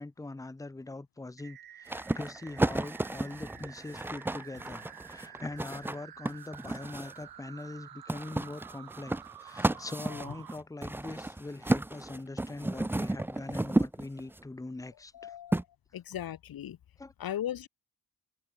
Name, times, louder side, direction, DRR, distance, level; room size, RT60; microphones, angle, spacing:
voice 1, 0.0-9.1 9.4-15.3 17.0-17.1, left 2 dB, 10° left, 1.1 m, -42 dB
sound 1, 1.4-10.6, right 11 dB, 85° right, 2.2 m, -50 dB
sound 2, 1.9-7.2 8.1-14.4 15.5-15.6, right 2 dB, 5° right, 0.5 m, -32 dB
voice 2, 9.7-10.3 15.1-15.6 15.9-16.8 17.2-17.7, left 11 dB, 80° left, 1.8 m, -38 dB
wide cardioid pair, 175°, 35 cm